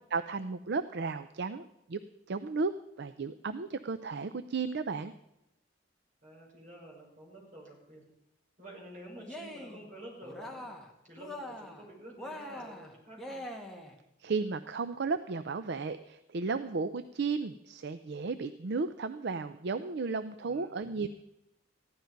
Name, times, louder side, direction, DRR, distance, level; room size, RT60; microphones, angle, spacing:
voice 1, 0.1-2.0 2.3-2.7 3.0-5.1 14.2-21.1, right 4 dB, 60° right, 12 dB, 0.5 m, -34 dB
voice 2, 6.2-8.0 8.6-10.6 11.0-13.4 20.4-20.8, right 1 dB, 40° right, -3 dB, 6.0 m, -49 dB
Cheering, 9.2-9.9 10.2-10.9 11.2-11.8 12.2-14.0, left 1 dB, ahead, 1.7 m, -43 dB
15.5 x 11.5 x 5.3 m, 0.87 s
head